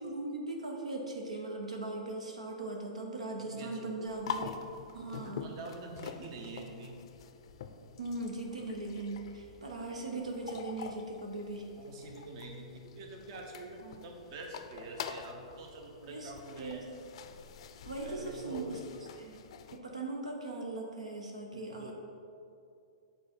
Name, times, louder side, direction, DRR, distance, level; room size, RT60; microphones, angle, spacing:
voice 1, 0.0-4.5 4.9-5.5 8.0-11.7 13.8-14.0 16.1-16.8 17.8-18.8 19.2-19.4 19.7-21.9, right 2 dB, 85° right, 0 dB, 0.9 m, -39 dB
voice 2, 3.4-4.1 5.2-7.0 11.8-16.9 18.0-18.8 21.5-21.9, right 3 dB, 50° right, 2 dB, 1.0 m, -46 dB
sound 1, 4.1-19.8, left 7 dB, 60° left, 0.4 m, -46 dB
8.6 x 3.9 x 4.3 m, 2.5 s
hypercardioid pair, 110°, 3 cm